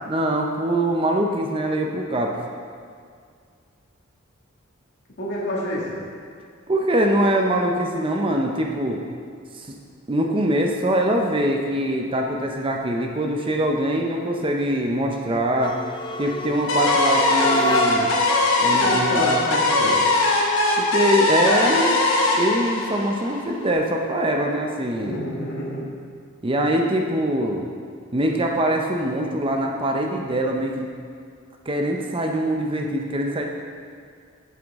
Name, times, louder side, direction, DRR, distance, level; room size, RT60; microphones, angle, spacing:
voice 1, 0.1-2.4 6.7-9.0 9.5-9.7 10.1-15.8 16.2-18.1 18.6-19.2 20.8-22.0 22.3-25.2 26.4-27.7 28.1-30.8 31.7-33.5, right 1 dB, 25° right, 1 dB, 0.6 m, -23 dB
voice 2, 5.2-6.0 18.6-20.0 25.0-25.9, equal, 55° left, -5 dB, 1.9 m, -28 dB
sound 1, 15.5-18.3, left 1 dB, 25° left, 0.6 m, -29 dB
sound 2, 16.7-23.6, left 2 dB, 75° left, 1.1 m, -20 dB
8.0 x 7.8 x 3.5 m, 2.1 s
head